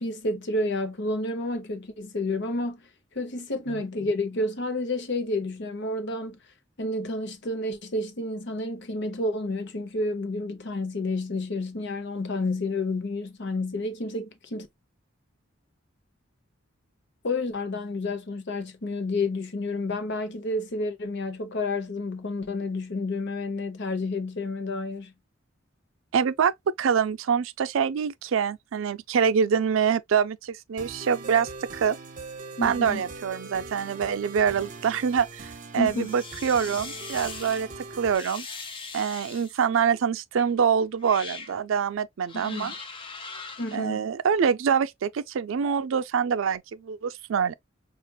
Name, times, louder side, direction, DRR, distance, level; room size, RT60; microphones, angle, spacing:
voice 1, 0.0-2.8 3.1-6.4 6.8-14.7 17.2-25.1 32.6-33.0 35.8-36.1 42.3-42.7 43.6-44.1, left 2 dB, 60° left, 0.8 m, -30 dB
voice 2, 26.1-32.0 32.6-37.7 38.0-38.5 38.9-42.7 43.7-47.5, right 7 dB, 70° right, 0.4 m, -25 dB
sound 1, 30.8-38.2, right 3 dB, 40° right, 0.7 m, -41 dB
sound 2, 35.8-37.6 38.1-39.7 40.4-40.5 41.0-41.6 42.3-43.8, left 4 dB, 25° left, 0.7 m, -40 dB
5.8 x 2.4 x 2.2 m
head